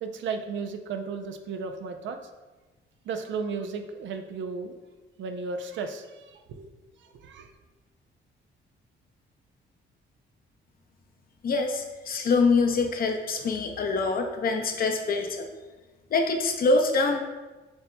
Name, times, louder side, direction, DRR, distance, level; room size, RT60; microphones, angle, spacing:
voice 1, 0.0-2.2 3.0-4.8 5.2-6.7 7.0-7.5, right 5 dB, 70° right, 6 dB, 0.5 m, -34 dB
voice 2, 11.4-15.5 16.1-17.2, left 3 dB, 50° left, 4 dB, 0.7 m, -25 dB
7.6 x 2.9 x 2.2 m, 1.2 s
cardioid pair, 90°, 20 cm